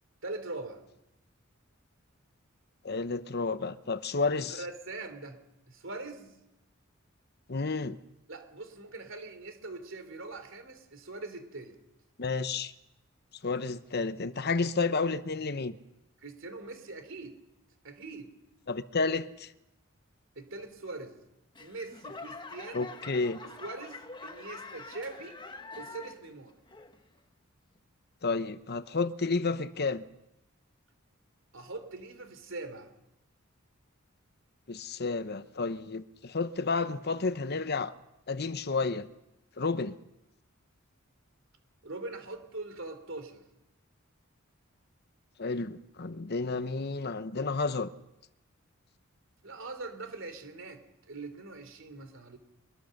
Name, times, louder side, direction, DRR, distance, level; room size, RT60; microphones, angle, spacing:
voice 1, 0.2-0.8 4.5-5.4 5.7-6.4 8.3-11.8 16.2-17.4 17.8-18.3 20.3-21.2 21.6-22.9 23.6-25.4 25.8-26.5 31.5-32.9 41.8-43.4 49.4-52.4, right 3 dB, 65° right, 3.3 m, -42 dB
voice 2, 2.8-4.6 7.5-8.0 12.2-12.7 13.4-15.8 18.7-19.5 22.7-23.4 28.2-30.0 34.7-37.9 38.3-39.1 39.6-40.0 45.4-47.9, left 4 dB, 50° left, 0.9 m, -31 dB
Laughter / Clapping / Crowd, 21.5-26.3 26.7-27.2 27.8-27.9, left 3 dB, 25° left, 1.7 m, -45 dB
23.5 x 22.5 x 6.6 m
head